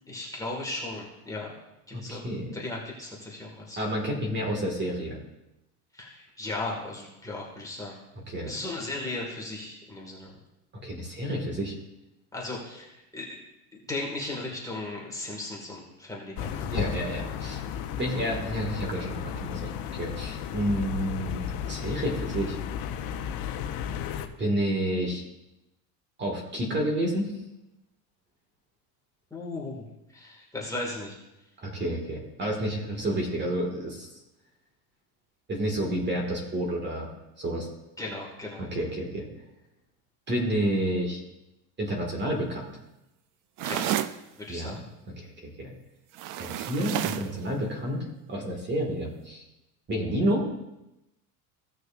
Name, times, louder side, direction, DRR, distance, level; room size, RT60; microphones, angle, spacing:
voice 1, 0.1-1.5 1.9-3.8 5.9-8.0 8.4-10.3 12.3-13.4 13.9-16.8 29.3-29.8 30.1-31.2 38.0-38.8 43.6-43.9 44.4-44.8, left 2 dB, 10° left, -3 dB, 1.9 m, -36 dB
voice 2, 1.9-2.5 3.8-5.2 8.1-8.5 10.8-11.7 16.7-17.7 18.0-22.6 24.4-25.2 26.2-27.3 31.6-34.1 35.5-37.1 37.4-37.7 38.6-39.3 40.3-41.2 41.8-42.7 44.5-44.8 45.2-45.7 46.4-49.4 49.9-50.5, equal, 25° right, 0 dB, 1.9 m, -30 dB
sound 1, 16.4-24.3, left 8 dB, 50° left, 0.8 m, -34 dB
sound 2, 43.6-44.2 46.1-47.3, right 12 dB, 45° right, 0.5 m, -30 dB
16.5 x 6.3 x 2.5 m, 0.91 s
supercardioid pair, 140°, 44 cm